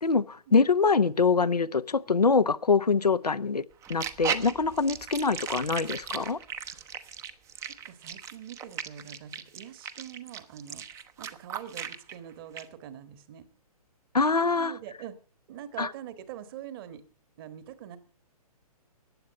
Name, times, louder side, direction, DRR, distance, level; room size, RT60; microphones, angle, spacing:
voice 1, 0.0-3.6 3.9-6.4 14.1-14.7 15.8-15.9, left 4 dB, 85° left, 0.8 m, -24 dB
sound 1, 3.8-12.1 12.6-12.7, right 8 dB, 15° right, 0.8 m, -37 dB
voice 2, 7.6-10.8 11.2-13.4 14.5-15.2 15.5-17.0 17.4-18.0, right 10 dB, 35° right, 1.7 m, -44 dB
15.0 x 9.6 x 6.8 m
figure-of-eight pair, 125°, 20 cm